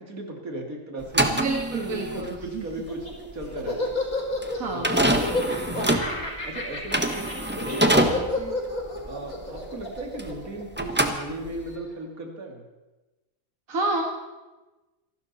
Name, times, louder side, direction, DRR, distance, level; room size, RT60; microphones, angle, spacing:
voice 1, 0.0-1.5 1.7-4.0 4.7-6.1 6.4-8.6 9.0-12.6, right 2 dB, 90° right, 2 dB, 3.0 m, -37 dB
sound 1, 1.0-10.5 10.7-11.8, right 1 dB, 10° right, 1.1 m, -26 dB
voice 2, 1.3-2.7 4.5-4.9 13.7-14.0, right 3 dB, 75° right, 0 dB, 2.1 m, -29 dB
Laughter, 2.7-11.2, left 2 dB, 90° left, 5.3 m, -30 dB
26.5 x 12.5 x 4.2 m, 1.1 s
omnidirectional pair, 1.4 m